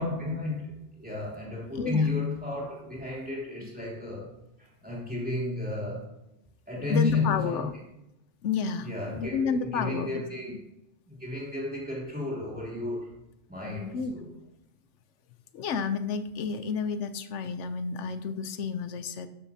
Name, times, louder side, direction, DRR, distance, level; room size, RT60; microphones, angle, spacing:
voice 1, 0.0-4.3 4.6-6.0 6.7-7.7 8.8-10.5 11.1-13.1 13.5-14.3, left 3 dB, 5° right, -5 dB, 2.9 m, -32 dB
voice 2, 1.7-2.1 6.9-7.7 8.4-10.2 13.9-14.1 15.5-19.3, left 6 dB, 80° left, 11 dB, 1.0 m, -30 dB
12.5 x 7.2 x 2.8 m, 0.90 s
omnidirectional pair, 1.2 m